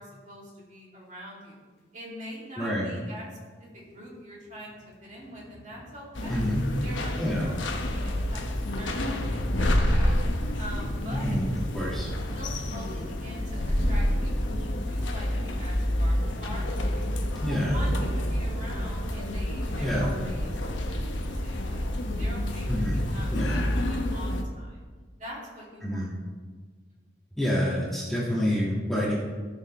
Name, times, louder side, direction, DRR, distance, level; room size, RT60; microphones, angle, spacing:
voice 1, 0.0-1.6 1.9-3.3 3.6-4.8 5.0-6.5 6.8-8.4 8.7-10.1 10.6-11.4 12.2-17.1 17.4-21.9 22.2-24.8 25.2-26.1, equal, 40° right, -4 dB, 2.5 m, -44 dB
voice 2, 2.6-2.9 6.3-6.6 7.2-7.5 11.1-12.1 17.4-17.8 19.8-20.1 22.7-23.0 23.3-23.6 25.8-26.1 27.4-29.1, equal, ahead, -7 dB, 1.7 m, -27 dB
sound 1, 3.2-3.3 3.7-17.4, equal, 65° left, 2.1 m, -48 dB
sound 2, 6.1-24.4, left 1 dB, 90° left, 1.0 m, -28 dB
16.0 x 6.6 x 3.2 m, 1.5 s
head